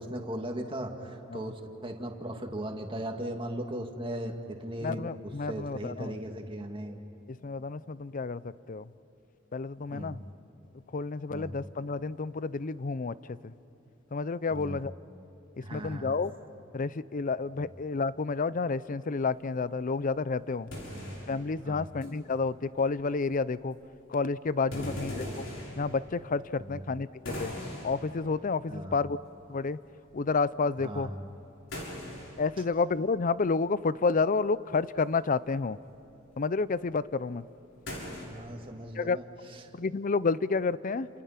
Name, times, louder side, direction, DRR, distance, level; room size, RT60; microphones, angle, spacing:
voice 1, 0.0-5.0 5.5-7.0 9.9-10.1 11.3-11.6 14.5-14.8 15.6-16.1 17.6-17.7 20.9-21.1 21.6-21.9 24.7-25.0 26.6-26.8 28.7-29.0 30.8-31.2 38.3-39.2, right 1 dB, 25° right, 3 dB, 2.1 m, -38 dB
voice 2, 4.8-6.2 7.3-8.9 9.5-10.2 10.9-13.5 14.1-14.9 15.7-16.3 16.7-20.7 21.3-23.8 24.1-25.5 25.8-27.5 27.8-29.2 29.5-29.8 30.1-31.1 32.4-35.8 36.4-37.5 38.9-39.2 39.7-41.1, left 4 dB, 40° left, 17 dB, 0.5 m, -30 dB
sound 1, 19.2-19.4 19.7-19.8 20.0-22.5 22.8-23.9 24.6-26.9 27.2-28.9 29.3-29.7 30.0-33.4 33.7-34.4 34.9-38.2, left 1 dB, 70° left, 6.7 m, -42 dB
30.0 x 28.0 x 5.9 m, 3.0 s
head